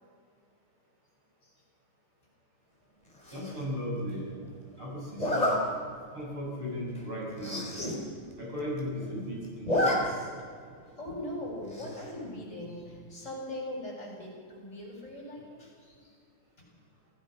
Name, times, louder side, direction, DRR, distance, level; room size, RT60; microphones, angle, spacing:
Zipper (clothing), 3.2-3.6 5.2-5.6 6.1-6.3 6.6-6.7 7.0-7.1 7.3-7.9 8.3-8.4 8.6-9.1 9.4-10.0 10.3-10.4 11.7-12.1, left 1 dB, 15° left, 4.3 m, -29 dB
voice 1, 3.3-4.3 4.8-5.6 6.1-7.7 8.4-10.3, equal, 75° right, -4 dB, 8.7 m, -36 dB
voice 2, 11.0-16.1, left 1 dB, 35° left, -3 dB, 7.9 m, -40 dB
27.5 x 17.5 x 6.1 m, 2.1 s
omnidirectional pair, 2.4 m